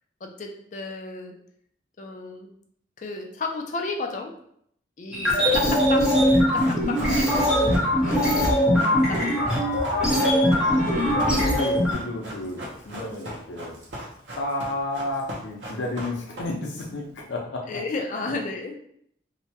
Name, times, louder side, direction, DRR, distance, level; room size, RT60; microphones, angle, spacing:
voice 1, 0.2-1.3 2.0-2.5 3.0-4.3 5.0-6.0 6.5-8.6 9.1-9.2 9.5-9.6 9.9-10.0 10.7-10.9 11.3-11.5 17.7-18.7, left 3 dB, 40° left, 3 dB, 0.4 m, -33 dB
sound 1, 5.1-11.9, equal, 5° right, 0.7 m, -21 dB
Run, 6.2-16.8 17.1-17.2, equal, 80° right, 0.7 m, -37 dB
voice 2, 11.2-13.7 14.4-17.8 18.2-18.4, left 2 dB, 85° left, 0 dB, 0.6 m, -32 dB
2.8 x 2.1 x 2.7 m, 0.68 s
head